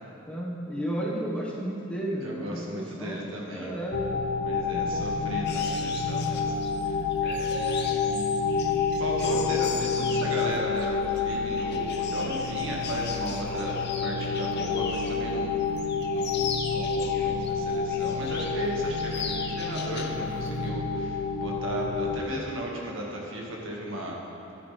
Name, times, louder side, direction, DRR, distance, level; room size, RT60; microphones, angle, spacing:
voice 1, 0.2-3.3 3.5-5.2, right 1 dB, 5° left, -5 dB, 1.4 m, -33 dB
voice 2, 2.2-3.7 4.4-6.6 6.8-8.4 8.6-15.5 16.1-24.2, equal, 70° right, -2 dB, 1.9 m, -35 dB
sound 1, 3.9-22.2, left 4 dB, 85° left, 0.9 m, -29 dB
sound 2, 5.4-15.3 15.6-17.5 17.9-18.6 18.9-20.2 20.5-20.7, left 6 dB, 55° left, 0.8 m, -39 dB
13.5 x 11.0 x 3.4 m, 3.0 s
head